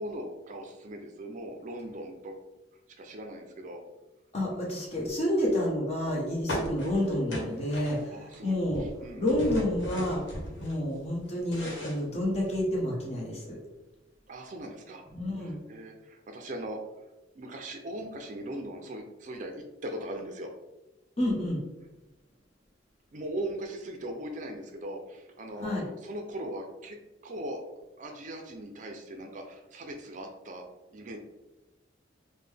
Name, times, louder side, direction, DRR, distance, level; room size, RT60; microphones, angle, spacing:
voice 1, 0.0-2.3 3.0-3.8 8.1-9.2 14.3-15.0 15.4-16.8 17.3-20.5 23.1-27.0 27.2-27.6 28.0-30.6 30.9-31.2, right 1 dB, 40° right, 3 dB, 0.4 m, -39 dB
voice 2, 4.3-8.9 9.2-10.2 10.6-13.6 15.1-15.6 21.2-21.6 25.6-25.8, left 1 dB, 35° left, -3 dB, 0.9 m, -29 dB
sound 1, 6.5-8.4 8.6-10.8 11.2-12.7, equal, 80° left, 1.0 m, -37 dB
3.6 x 2.1 x 3.3 m, 1.0 s
head